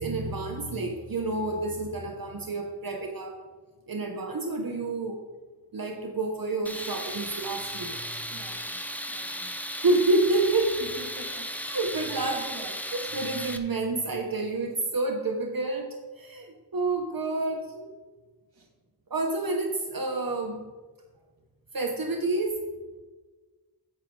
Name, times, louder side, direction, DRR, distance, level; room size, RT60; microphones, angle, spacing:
voice 1, 0.0-3.4 3.9-5.2 5.7-8.2 9.8-10.8 11.7-12.3 12.9-15.9 16.2-17.9 19.1-20.6 21.7-22.6, right 2 dB, 60° right, 2 dB, 1.1 m, -29 dB
Tools, 6.7-13.6, equal, 5° left, 0.8 m, -36 dB
voice 2, 8.3-9.6 10.8-11.5 12.1-12.9 18.5-18.7, right 2 dB, 90° right, 1 dB, 2.0 m, -44 dB
15.0 x 6.1 x 3.8 m, 1.3 s
wide cardioid pair, 55°, 39 cm